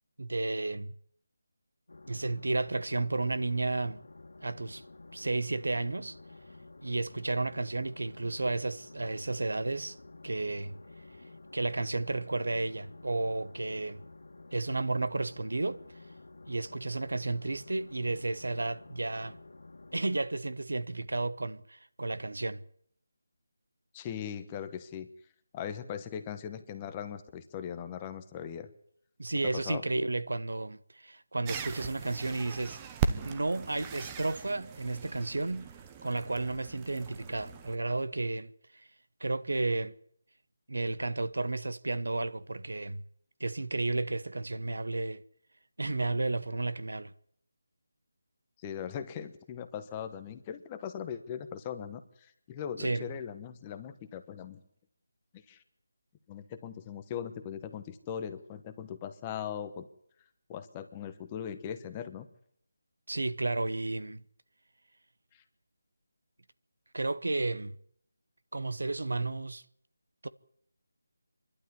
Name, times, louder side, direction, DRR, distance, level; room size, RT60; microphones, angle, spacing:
voice 1, 0.2-0.9 2.1-4.0 4.4-4.8 5.1-6.2 6.8-10.0 10.2-10.8 11.5-14.0 14.5-15.8 16.5-19.4 19.9-22.6 29.2-32.8 33.2-35.7 36.0-38.9 39.2-39.9 40.7-43.0 43.4-45.2 45.8-47.1 52.8-53.1 63.1-64.2 66.9-67.8 68.5-69.6 70.2-70.3, right 2 dB, 85° right, 1.0 m, -32 dB
sound 1, 1.9-20.2, left 2 dB, 80° left, 2.0 m, -51 dB
voice 2, 23.9-25.1 25.5-28.7 29.5-29.8 48.6-54.6 55.3-55.6 56.3-59.9 60.5-62.3 65.3-65.4, left 8 dB, 15° left, 1.1 m, -39 dB
sound 2, 31.4-37.8, right 6 dB, 15° right, 0.9 m, -38 dB
25.0 x 12.0 x 9.8 m
figure-of-eight pair, 170°, 0 cm